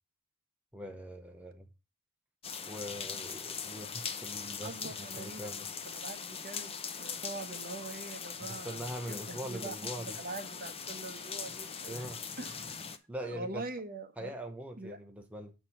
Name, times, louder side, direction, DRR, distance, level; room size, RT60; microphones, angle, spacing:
voice 1, 0.7-1.7 2.7-5.7 8.4-10.2 11.9-12.2 13.1-13.6 14.2-15.5, right 1 dB, 5° right, 0.8 m, -42 dB
sound 1, 2.4-13.0, left 6 dB, 25° left, 0.7 m, -41 dB
voice 2, 4.6-5.5 5.8-6.7 7.0-9.8 10.0-12.8 13.2-14.4 14.8-15.0, right 2 dB, 40° right, 1.1 m, -43 dB
8.0 x 4.4 x 5.7 m
head